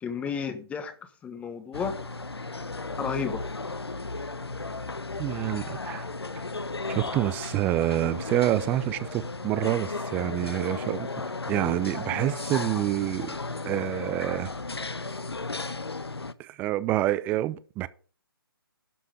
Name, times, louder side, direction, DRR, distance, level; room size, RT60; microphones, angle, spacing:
voice 1, 0.0-2.0 3.0-3.4, left 6 dB, 10° left, 1.1 m, -32 dB
sound 1, 1.7-16.3, left 3 dB, 85° left, 0.9 m, -35 dB
voice 2, 5.2-6.0 6.9-11.1 11.5-13.4 13.7-14.5 16.4-17.9, right 15 dB, 15° right, 0.5 m, -27 dB
12.0 x 5.7 x 7.9 m
figure-of-eight pair, 140°, 13 cm